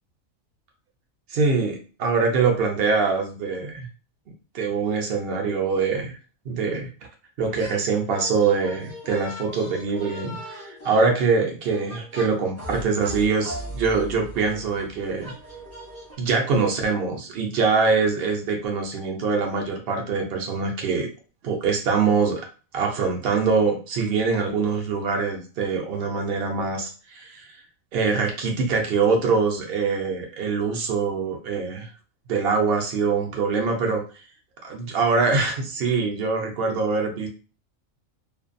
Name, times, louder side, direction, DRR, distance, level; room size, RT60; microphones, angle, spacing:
voice 1, 1.3-3.9 4.5-6.2 6.4-6.9 7.4-15.3 16.2-21.1 21.4-22.5 22.7-27.6 27.9-31.9 32.3-34.0 34.6-37.3, right 4 dB, 55° right, 2 dB, 0.7 m, -24 dB
sound 1, 7.4-7.8 8.1-16.1, equal, 20° left, 0.4 m, -39 dB
2.5 x 2.3 x 2.5 m, 0.37 s
omnidirectional pair, 1.4 m